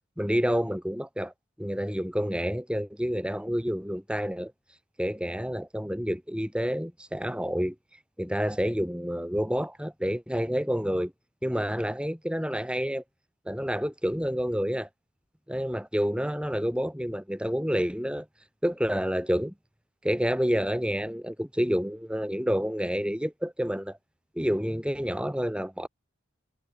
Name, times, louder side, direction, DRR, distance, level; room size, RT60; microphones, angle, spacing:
voice 1, 0.2-4.5 5.0-7.7 8.2-11.1 11.4-13.0 13.5-14.9 15.5-18.3 18.6-19.5 20.0-24.0 24.3-25.9, equal, 5° right, 6.2 m, -29 dB
head